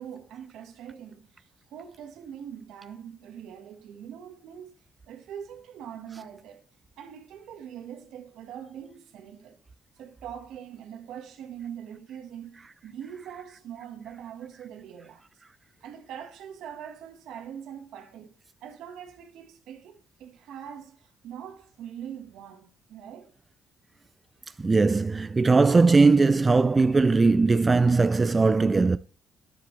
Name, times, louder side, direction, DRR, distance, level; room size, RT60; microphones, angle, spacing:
voice 1, 0.0-4.7 5.1-6.6 7.0-9.6 10.0-15.2 15.8-18.3 18.6-23.3, right 9 dB, 85° right, 1.4 m, -42 dB
voice 2, 24.6-29.0, right 3 dB, 25° right, 0.4 m, -20 dB
10.5 x 7.3 x 3.2 m
cardioid pair, 90°, 0 cm